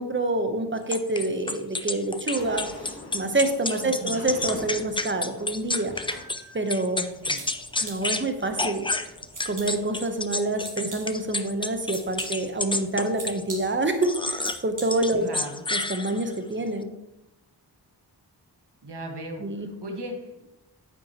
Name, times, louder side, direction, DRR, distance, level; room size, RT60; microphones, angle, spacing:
voice 1, 0.0-5.9 6.5-7.1 7.8-8.9 9.4-15.3 15.7-16.9 19.4-19.7, right 2 dB, 30° right, 7 dB, 0.9 m, -27 dB
sound 1, 0.9-6.4 6.7-8.2 8.6-13.4 14.0-14.6 14.9-16.4, left 2 dB, 15° left, 0.4 m, -30 dB
Sliding door, 2.1-9.6, left 2 dB, 65° left, 2.1 m, -44 dB
voice 2, 3.8-4.3 7.2-7.4 15.2-15.6 18.8-20.4, right 1 dB, 75° right, 2 dB, 1.7 m, -37 dB
sound 2, 7.0-15.3, right 3 dB, 50° right, 1.7 m, -45 dB
9.2 x 7.8 x 3.0 m, 0.92 s
wide cardioid pair, 90°, 41 cm